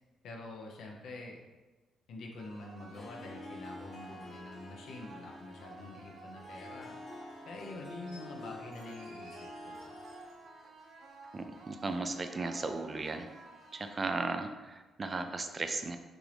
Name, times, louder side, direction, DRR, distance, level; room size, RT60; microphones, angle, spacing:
voice 1, 0.2-1.4 2.1-7.0 7.5-9.4 9.6-10.0, left 2 dB, 75° left, 0 dB, 0.9 m, -46 dB
sound 1, 2.4-14.4, right 3 dB, 55° right, 0.7 m, -53 dB
Harp, 2.7-10.6, left 2 dB, 40° left, 0.6 m, -49 dB
sound 2, 8.1-8.3 8.7-10.4 11.8-11.9, equal, 90° right, 0.9 m, -59 dB
voice 2, 11.3-13.3 13.7-16.0, right 3 dB, 30° right, 7 dB, 0.4 m, -36 dB
6.0 x 2.6 x 3.4 m, 1.2 s
cardioid pair, 90°, 0 cm